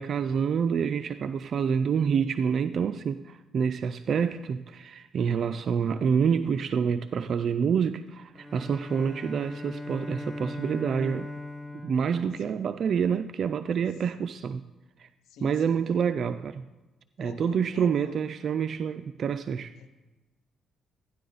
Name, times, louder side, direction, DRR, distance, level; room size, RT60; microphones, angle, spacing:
voice 1, 0.0-11.3 11.8-14.6 15.0-15.1 15.4-16.7 17.2-19.7, right 7 dB, 55° right, 0.3 m, -27 dB
Bowed string instrument, 8.3-13.1, left 2 dB, 5° left, 1.1 m, -39 dB
voice 2, 12.4-12.9 15.3-16.0 17.2-18.3 19.8-19.9, left 6 dB, 85° left, 0.8 m, -47 dB
13.5 x 10.0 x 4.0 m
cardioid pair, 90°, 0 cm